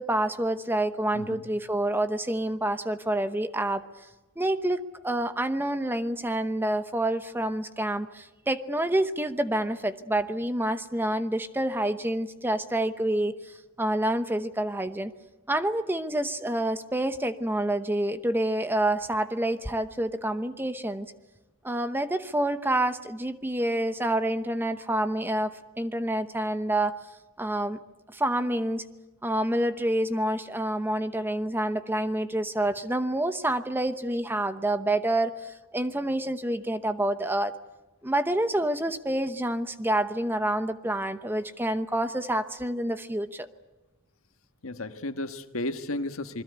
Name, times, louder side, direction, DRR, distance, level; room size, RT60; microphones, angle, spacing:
voice 1, 0.0-3.8 4.4-15.1 15.5-21.1 21.6-27.0 27.4-27.8 28.1-28.8 29.2-37.5 38.0-43.5, right 1 dB, 10° right, 10 dB, 0.9 m, -28 dB
voice 2, 1.1-1.5 44.6-46.4, left 2 dB, 75° left, 8 dB, 1.6 m, -33 dB
27.5 x 21.5 x 8.1 m, 1.1 s
head